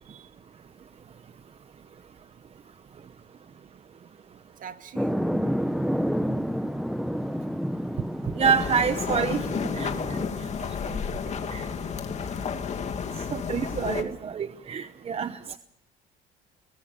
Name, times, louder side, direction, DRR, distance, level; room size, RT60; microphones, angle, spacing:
voice 1, 4.6-5.2 10.6-11.1 12.1-13.0, right 8 dB, 55° right, 9 dB, 1.8 m, -46 dB
sound 1, 5.0-10.3, equal, ahead, 0.8 m, -29 dB
sound 2, 8.4-14.0, left 6 dB, 40° left, 2.6 m, -31 dB
voice 2, 8.4-9.4 9.7-9.9 11.5-11.7 13.3-15.6, right 6 dB, 35° right, 12 dB, 0.9 m, -27 dB
22.5 x 20.5 x 6.8 m, 0.77 s
cardioid pair, 110°, 17 cm